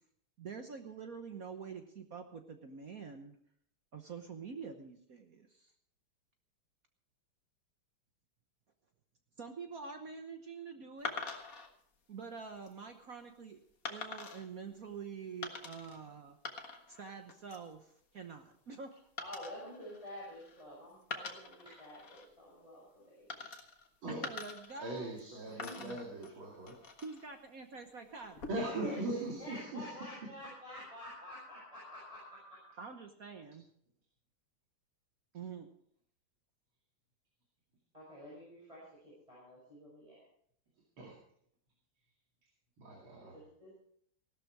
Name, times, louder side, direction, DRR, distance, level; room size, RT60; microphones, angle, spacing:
voice 1, 0.4-3.3 3.9-5.7 9.4-11.1 12.1-13.6 13.9-16.4 16.9-18.9 24.2-25.1 25.7-26.0 27.0-29.6 32.8-33.7 35.3-35.7, right 5 dB, 50° right, 6 dB, 1.3 m, -47 dB
sound 1, 11.1-11.7 12.4-12.7 13.9-14.5 15.4-16.0 16.3-17.0 17.3-17.7 19.2-20.6 21.0-22.3 23.3-23.9 24.2-25.3 25.6-27.3 28.2-28.8, left 4 dB, 45° left, 1.9 m, -45 dB
voice 2, 19.2-23.4 25.4-25.8 28.6-32.6 37.9-40.3 43.2-43.7, equal, 15° right, -7 dB, 6.6 m, -48 dB
voice 3, 24.8-26.8 28.5-29.9 30.6-30.7 41.0-41.2 42.8-43.4, right 2 dB, 75° right, -1 dB, 3.2 m, -40 dB
16.5 x 12.5 x 4.7 m, 0.65 s
omnidirectional pair, 2.3 m